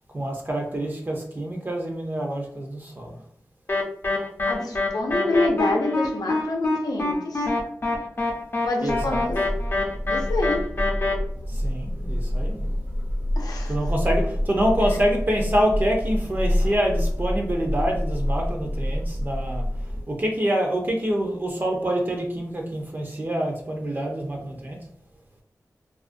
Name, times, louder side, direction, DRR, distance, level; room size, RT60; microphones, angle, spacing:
voice 1, 0.1-3.2 8.8-9.3 11.5-12.7 13.7-19.7 20.1-24.8, equal, 30° right, 1 dB, 0.5 m, -26 dB
sound 1, 3.7-11.1, left 2 dB, 35° left, 0.5 m, -25 dB
voice 2, 4.2-7.5 8.6-9.4 10.1-10.6 13.4-13.8, left 2 dB, 80° left, 1 dB, 0.5 m, -27 dB
sound 2, 8.9-20.0, equal, 75° right, 0.6 m, -27 dB
2.4 x 2.1 x 2.5 m, 0.62 s
wide cardioid pair, 75°, 6 cm